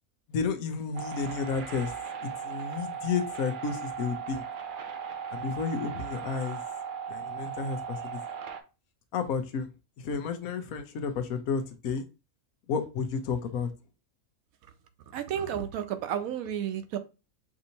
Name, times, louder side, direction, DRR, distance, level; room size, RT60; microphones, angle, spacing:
voice 1, 0.3-1.9 2.2-4.4 5.3-6.6 7.1-8.2 9.1-9.7 10.0-12.0 12.7-13.7, left 5 dB, 85° left, 1.2 m, -31 dB
sound 1, 0.9-8.6, right 6 dB, 55° right, 0.6 m, -38 dB
voice 2, 15.1-17.0, right 9 dB, 85° right, 1.1 m, -32 dB
6.0 x 2.7 x 2.7 m
omnidirectional pair, 1.5 m